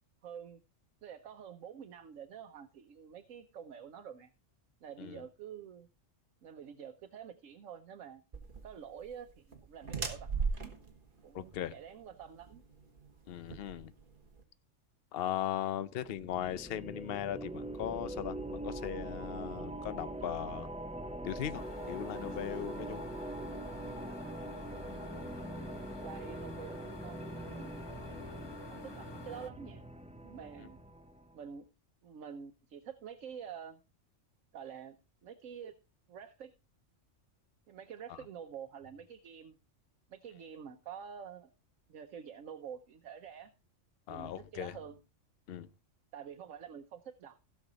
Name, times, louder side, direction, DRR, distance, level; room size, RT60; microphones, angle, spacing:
voice 1, 0.2-0.6 1.0-4.3 4.8-5.9 6.4-8.2 8.6-10.7 11.2-12.6 25.4-27.8 28.5-29.8 30.2-30.8 31.3-31.6 32.0-33.8 34.5-35.0 35.2-35.8 36.1-36.5 37.7-39.6 40.1-41.5 41.9-43.5 44.1-44.9 46.1-47.4, right 8 dB, 90° right, 1.2 m, -48 dB
sound 1, 8.3-14.4, right 5 dB, 45° right, 1.7 m, -40 dB
voice 2, 11.3-11.8 13.3-13.9 15.1-20.7 21.2-23.1 30.6-30.7 38.1-38.2 44.1-44.8 45.5-45.7, left 11 dB, 55° left, 0.8 m, -38 dB
sound 2, 16.0-31.4, right 1 dB, 10° right, 0.3 m, -43 dB
sound 3, 21.5-29.5, left 3 dB, 25° left, 0.7 m, -49 dB
16.0 x 6.4 x 3.9 m
omnidirectional pair, 1.3 m